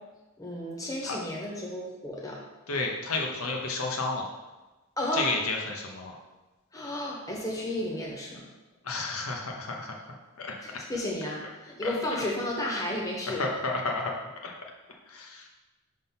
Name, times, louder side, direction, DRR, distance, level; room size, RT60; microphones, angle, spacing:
voice 1, 0.4-2.4 5.0-5.3 6.7-8.4 10.6-13.5, left 1 dB, 15° left, -3 dB, 1.0 m, -33 dB
voice 2, 2.7-4.3 5.1-6.1 8.8-10.0 10.4-10.5 11.8-11.9 13.4-14.1 14.4-14.5 15.1-15.4, left 3 dB, 75° left, 0 dB, 0.9 m, -31 dB
5.4 x 3.8 x 5.8 m, 1.1 s
head